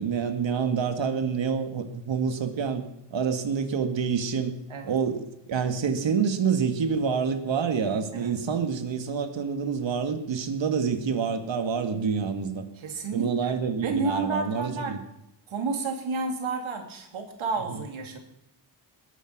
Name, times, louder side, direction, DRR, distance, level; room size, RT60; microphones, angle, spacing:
voice 1, 0.0-2.8 3.1-4.5 4.8-12.7 13.1-15.0 17.7-17.8, right 6 dB, 70° right, 7 dB, 2.2 m, -27 dB
voice 2, 12.8-13.5 13.8-15.0 15.5-18.2, right 3 dB, 85° right, 3 dB, 3.1 m, -31 dB
21.0 x 10.5 x 6.1 m, 0.88 s
wide cardioid pair, 105°, 47 cm